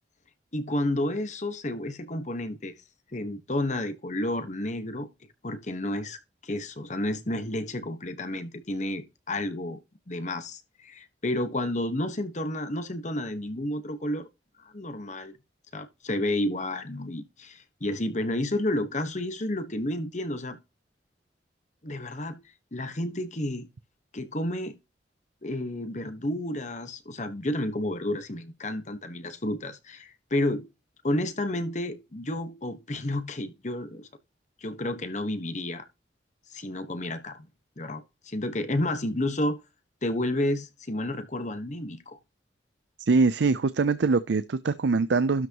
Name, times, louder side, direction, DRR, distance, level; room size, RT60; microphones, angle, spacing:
voice 1, 0.5-2.7 3.1-5.1 5.4-6.2 6.4-9.8 10.1-14.3 14.6-15.3 15.7-20.6 21.8-22.4 22.7-23.7 24.1-24.8 25.4-30.7 31.0-34.1 34.6-35.8 36.5-37.5 37.8-39.6 40.0-42.2, left 1 dB, 40° left, 1.3 m, -31 dB
voice 2, 43.0-45.5, right 4 dB, 80° right, 0.5 m, -23 dB
12.5 x 6.1 x 3.0 m
head